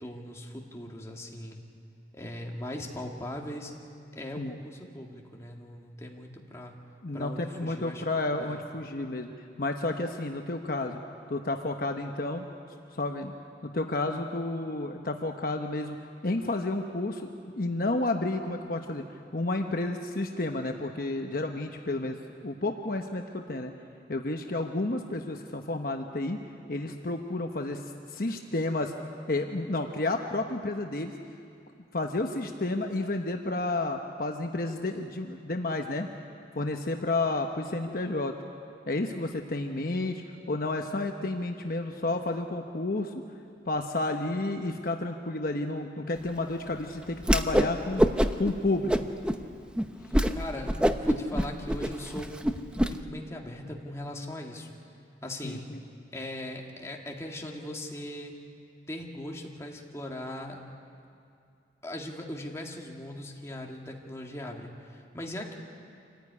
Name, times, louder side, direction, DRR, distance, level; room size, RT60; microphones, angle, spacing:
voice 1, 0.0-1.6 2.1-3.7 4.1-6.8 7.1-8.0 8.4-8.6 50.3-54.7 55.2-55.7 56.1-58.4 58.9-60.6 61.8-65.5, left 1 dB, 15° left, 0 dB, 2.1 m, -39 dB
voice 2, 7.0-9.3 9.6-11.0 11.3-12.4 12.9-13.3 13.6-16.0 16.2-19.0 19.3-22.2 22.4-23.7 24.1-26.4 26.7-27.8 28.1-28.9 29.3-31.1 31.9-36.1 36.5-38.4 38.9-43.1 43.7-48.0 48.4-49.1 55.4-55.8, left 2 dB, 55° left, 4 dB, 1.0 m, -31 dB
Whoosh swoosh swish, 47.2-47.7 48.0-48.5 48.9-49.4 49.8-49.9 50.1-50.3 50.6-52.9, equal, 5° right, 0.7 m, -24 dB
26.5 x 15.0 x 9.6 m, 2.4 s
head